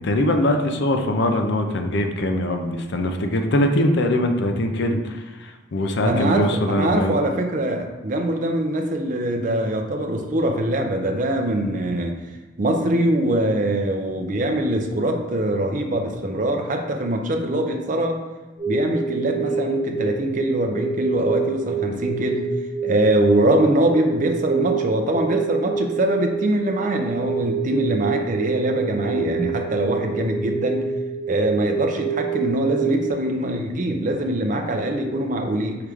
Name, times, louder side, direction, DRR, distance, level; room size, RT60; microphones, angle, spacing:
voice 1, 0.0-7.2, left 1 dB, 60° left, 5 dB, 0.5 m, -22 dB
voice 2, 6.0-12.2 12.6-18.2 18.7-22.5 22.8-30.8 31.3-35.8, right 1 dB, 40° right, 4 dB, 0.5 m, -23 dB
sound 1, 18.6-33.1, right 6 dB, 20° right, 1.4 m, -27 dB
4.8 x 3.1 x 3.5 m, 1.2 s
head